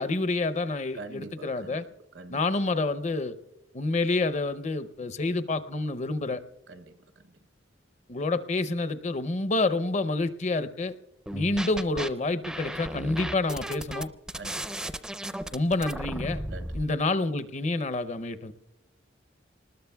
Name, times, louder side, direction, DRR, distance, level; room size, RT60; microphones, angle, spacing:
voice 1, 0.0-1.8 2.3-3.4 3.7-6.4 8.1-10.9 11.3-14.1 15.5-16.4 16.7-18.5, left 2 dB, 40° left, 0.6 m, -28 dB
voice 2, 0.9-1.8 2.1-2.4 6.7-7.0 14.3-14.8 16.5-16.8, right 2 dB, 70° right, 0.8 m, -44 dB
sound 1, 11.3-12.1 12.4-16.9, right 1 dB, 5° right, 0.4 m, -35 dB
27.0 x 20.0 x 2.3 m
head